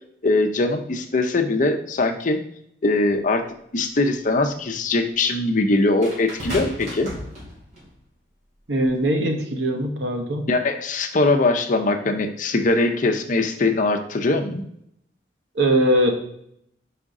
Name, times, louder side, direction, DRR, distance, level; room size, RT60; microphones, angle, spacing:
voice 1, 0.2-2.4 2.8-3.4 3.7-7.1 10.5-14.6, left 2 dB, 45° left, 5 dB, 0.7 m, -21 dB
sound 1, 3.1-3.2 6.0-7.9 8.8-9.0, equal, 40° right, 2.6 m, -34 dB
voice 2, 8.7-10.5 15.5-16.1, right 1 dB, 85° right, 3 dB, 1.1 m, -21 dB
5.1 x 5.0 x 3.7 m, 0.72 s
head